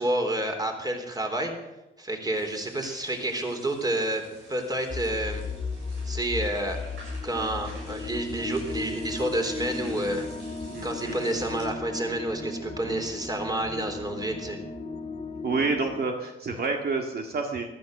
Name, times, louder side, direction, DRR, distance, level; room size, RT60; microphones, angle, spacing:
voice 1, 0.0-1.5 2.0-4.2 4.5-5.4 6.1-6.8 7.2-10.3 10.8-14.6, right 1 dB, 20° right, 4 dB, 3.5 m, -29 dB
sound 1, 2.3-11.6, right 2 dB, 80° right, 7.6 m, -50 dB
sound 2, 4.9-16.1, left 4 dB, 30° left, 2.0 m, -36 dB
voice 2, 10.7-11.2 15.4-17.6, right 4 dB, 50° right, 2 dB, 1.9 m, -28 dB
15.5 x 12.5 x 6.6 m, 0.98 s
cardioid pair, 90°, 20 cm